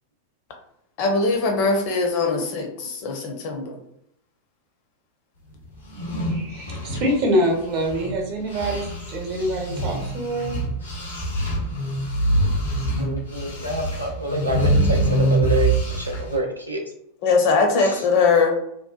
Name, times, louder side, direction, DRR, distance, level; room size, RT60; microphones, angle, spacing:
voice 1, 1.0-3.8 17.2-18.5, left 4 dB, 45° left, 3 dB, 0.5 m, -21 dB
sound 1, 5.8-8.2 8.5-16.4, right 1 dB, 80° left, 0.7 m, -24 dB
voice 2, 6.3-10.6, equal, 45° right, 1 dB, 0.8 m, -25 dB
voice 3, 13.0-16.8 17.8-18.0, right 1 dB, 85° right, 0 dB, 0.4 m, -27 dB
2.7 x 2.2 x 2.2 m, 0.76 s
figure-of-eight pair, 90°, 0 cm